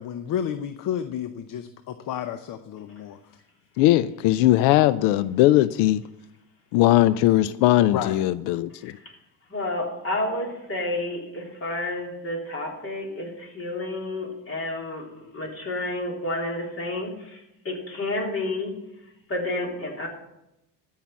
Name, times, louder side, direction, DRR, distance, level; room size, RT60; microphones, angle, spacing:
voice 1, 0.0-3.4 7.8-8.2, left 9 dB, 50° left, 0.8 m, -31 dB
voice 2, 3.8-6.0 6.7-9.0, left 15 dB, 90° left, 0.5 m, -19 dB
voice 3, 8.8-9.1 9.5-18.7 19.3-20.1, left 1 dB, 35° left, 3.6 m, -30 dB
13.5 x 5.7 x 7.4 m
cardioid pair, 110°, 41 cm